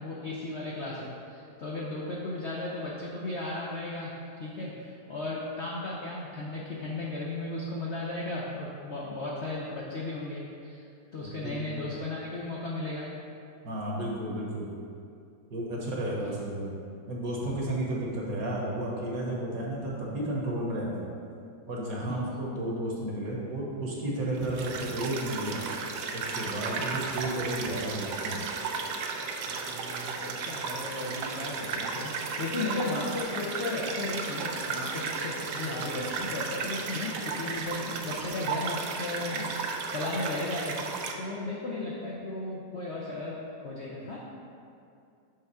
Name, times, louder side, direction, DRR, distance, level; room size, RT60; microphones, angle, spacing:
voice 1, 0.0-10.8 11.1-13.1 15.8-15.9 22.1-22.2 29.5-40.8 41.2-44.2, left 2 dB, 60° left, -4 dB, 0.7 m, -35 dB
voice 2, 11.2-11.6 13.6-14.7 15.5-16.8 17.1-21.1 21.7-25.7 26.1-28.4, right 1 dB, 55° right, -4 dB, 1.4 m, -32 dB
sound 1, 24.4-41.1, right 4 dB, 70° right, 1.1 m, -34 dB
7.0 x 3.5 x 5.5 m, 2.5 s
omnidirectional pair, 2.1 m